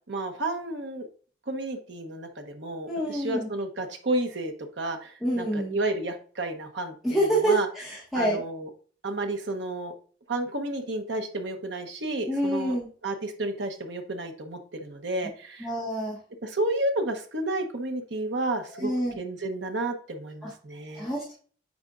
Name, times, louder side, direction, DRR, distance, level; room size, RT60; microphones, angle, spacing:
voice 1, 0.1-1.1 1.5-7.7 8.1-8.7 9.0-9.9 10.3-12.7 13.0-15.7 16.4-21.1, right 2 dB, 85° right, 5 dB, 1.1 m, -31 dB
voice 2, 2.9-3.5 5.2-5.8 7.0-8.4 12.3-12.9 15.6-16.2 18.8-19.2 20.4-20.5 20.9-21.4, right 1 dB, ahead, -7 dB, 1.6 m, -27 dB
8.8 x 4.8 x 2.6 m, 0.43 s
head